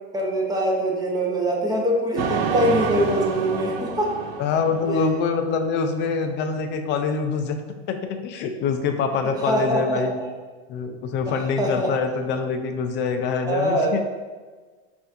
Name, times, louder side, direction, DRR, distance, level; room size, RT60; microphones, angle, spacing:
voice 1, 0.1-4.1 4.8-5.0 9.4-10.0 11.3-11.9 13.5-14.0, equal, 10° right, -3 dB, 0.8 m, -23 dB
sound 1, 2.2-5.6, right 6 dB, 60° right, 0.5 m, -28 dB
voice 2, 4.4-7.6 7.9-10.2 10.7-14.1, left 5 dB, 35° left, 6 dB, 0.4 m, -25 dB
5.3 x 2.6 x 2.6 m, 1.4 s
hypercardioid pair, 105°, 32 cm